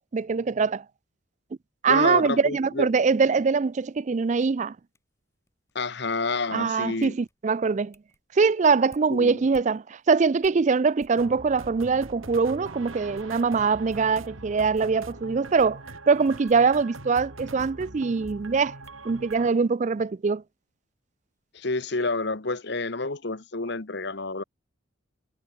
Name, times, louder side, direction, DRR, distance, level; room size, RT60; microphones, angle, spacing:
voice 1, 0.1-0.8 1.8-4.8 6.5-7.9 8.3-15.8 16.1-18.7 19.0-20.4, right 5 dB, 35° right, 0.3 m, -23 dB
voice 2, 1.9-2.9 5.7-7.1 9.1-9.4 21.5-24.4, left 3 dB, 55° left, 1.3 m, -29 dB
sound 1, 2.7-11.3 12.1-12.2 12.6-12.7 12.9-15.1 15.5-16.2 16.4-16.8 17.6-20.6 20.8-21.4, left 1 dB, 15° left, 5.6 m, -60 dB
sound 2, 11.2-19.5, right 2 dB, 80° right, 4.3 m, -42 dB
head